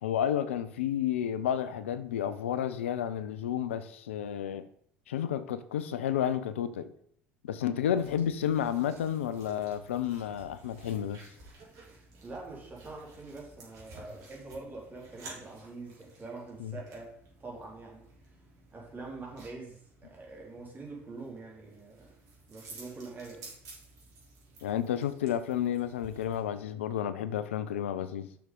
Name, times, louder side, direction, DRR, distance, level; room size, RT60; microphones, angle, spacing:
voice 1, 0.0-4.6 5.1-6.9 7.4-11.3 16.6-16.8 24.6-28.3, left 9 dB, 80° left, 0.5 m, -31 dB
sound 1, 7.9-26.4, right 2 dB, 55° right, 3.8 m, -54 dB
voice 2, 12.2-17.1 17.4-18.1 18.7-22.1 22.5-23.5, right 3 dB, 30° right, 3.6 m, -44 dB
6.9 x 6.2 x 5.3 m
hypercardioid pair, 70°, 7 cm